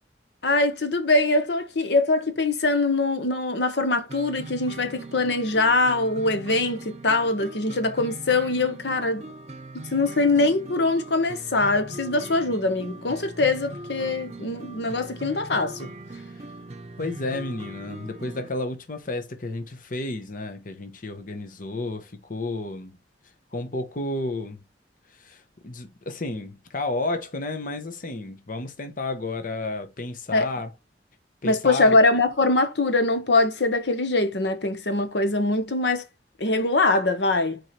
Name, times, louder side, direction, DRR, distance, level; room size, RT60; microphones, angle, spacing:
voice 1, 0.4-9.2 9.7-15.9 30.3-30.5 31.4-36.0 36.4-37.6, left 2 dB, 75° left, 1.0 m, -23 dB
sound 1, 4.1-18.5, right 2 dB, 40° right, 0.8 m, -40 dB
voice 2, 17.0-23.0 23.5-24.6 25.1-30.7 31.4-32.0, left 2 dB, 50° left, 0.9 m, -32 dB
4.8 x 4.6 x 4.3 m
head